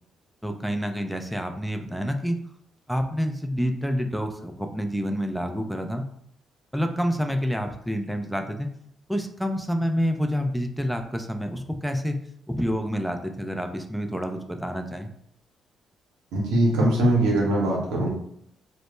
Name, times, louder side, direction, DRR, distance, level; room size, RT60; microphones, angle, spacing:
voice 1, 0.4-2.4 2.9-6.0 6.7-8.7 9.1-12.2 12.5-15.1, equal, ahead, 5 dB, 0.3 m, -28 dB
voice 2, 16.3-18.1, right 1 dB, 85° right, -3 dB, 0.7 m, -21 dB
2.0 x 2.0 x 3.0 m, 0.70 s
hypercardioid pair, 50°, 0 cm